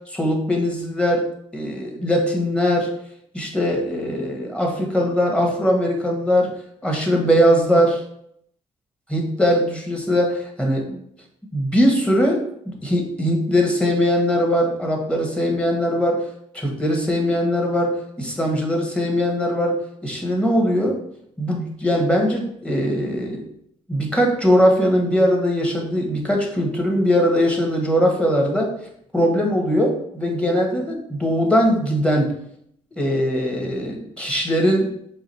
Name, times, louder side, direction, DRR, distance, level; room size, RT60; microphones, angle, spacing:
voice 1, 0.1-1.2 1.5-2.9 3.3-6.5 6.8-8.0 9.1-11.0 11.5-12.4 12.8-16.2 16.5-21.0 21.4-23.4 23.9-28.7 29.1-32.3 33.0-34.9, equal, 10° left, 0 dB, 1.4 m, -20 dB
4.8 x 2.5 x 4.3 m, 0.72 s
cardioid pair, 70°, 13 cm